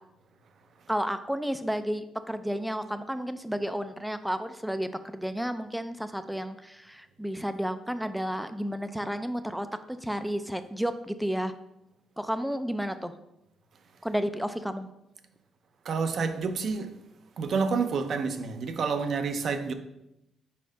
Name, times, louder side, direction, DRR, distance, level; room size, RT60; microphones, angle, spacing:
voice 1, 0.9-11.5 12.2-13.1 14.0-14.9, equal, ahead, 0.4 m, -32 dB
voice 2, 15.8-16.9 17.4-19.7, right 5 dB, 60° right, 0.6 m, -29 dB
4.5 x 4.3 x 5.0 m
cardioid pair, 90°, 0 cm